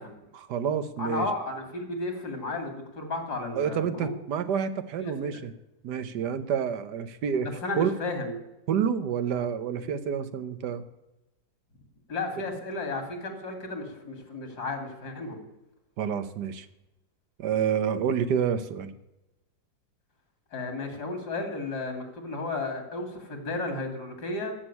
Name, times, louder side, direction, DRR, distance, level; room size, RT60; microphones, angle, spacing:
voice 1, 0.3-1.3 3.5-5.5 5.8-7.5 7.8-7.9 8.7-10.8 16.0-16.7 17.4-18.9, right 7 dB, 80° right, 12 dB, 1.5 m, -28 dB
voice 2, 1.0-4.1 5.0-5.4 7.6-8.4 12.1-15.5 20.5-24.6, left 2 dB, 70° left, 5 dB, 3.1 m, -33 dB
14.0 x 6.3 x 9.8 m, 0.93 s
omnidirectional pair, 1.8 m